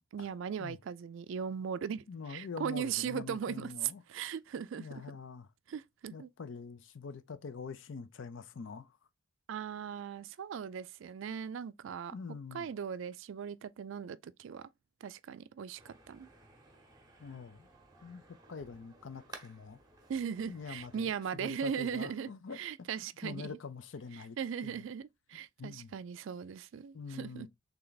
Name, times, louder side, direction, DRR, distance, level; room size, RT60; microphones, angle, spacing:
voice 1, 0.1-5.0 5.7-6.3 9.5-12.1 12.5-14.7 15.0-16.3 20.1-22.3 22.5-23.6 24.4-27.5, right 7 dB, 70° right, 0.3 m, -38 dB
voice 2, 2.1-4.0 4.8-5.5 6.1-9.0 12.1-12.7 17.2-17.7 18.0-18.2 18.5-19.8 20.5-22.6 23.0-24.8 25.6-25.9 26.9-27.5, left 5 dB, 65° left, 0.5 m, -45 dB
sound 1, 15.8-21.2, right 3 dB, 20° right, 0.8 m, -56 dB
3.4 x 3.2 x 3.9 m
head